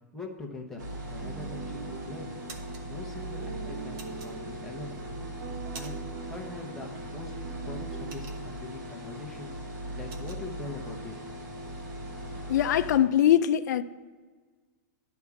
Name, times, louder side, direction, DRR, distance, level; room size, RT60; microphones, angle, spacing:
voice 1, 0.1-0.8 1.1-2.3 2.8-4.9 5.7-11.2, left 3 dB, ahead, 0.8 m, -42 dB
sound 1, 0.8-13.0, right 1 dB, 85° right, 2.0 m, -39 dB
sound 2, 1.2-8.2, right 7 dB, 55° right, 0.5 m, -43 dB
sound 3, 1.4-1.9 2.2-2.8 4.0-4.8 5.3-6.2 6.5-6.8 7.1-8.8 9.2-9.4 9.6-10.4, right 4 dB, 30° right, 0.8 m, -47 dB
voice 2, 12.5-13.8, left 11 dB, 70° left, 0.4 m, -22 dB
10.5 x 3.6 x 6.9 m
supercardioid pair, 165°, 10 cm